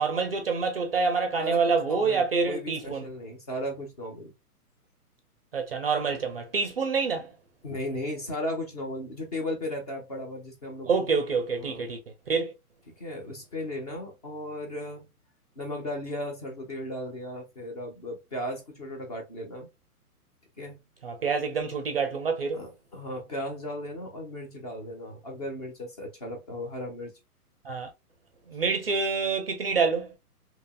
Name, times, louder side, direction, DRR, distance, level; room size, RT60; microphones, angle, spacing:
voice 1, 0.0-3.1 5.5-7.3 10.9-12.0 12.3-12.5 21.0-22.7 27.6-27.9 28.5-30.1, right 5 dB, 40° right, 0.4 m, -27 dB
voice 2, 1.9-4.3 7.6-11.1 11.6-11.9 13.0-15.1 15.6-19.7 20.6-20.8 22.5-27.1, left 1 dB, 25° left, 0.5 m, -36 dB
2.8 x 2.6 x 2.2 m
hypercardioid pair, 145°, 46 cm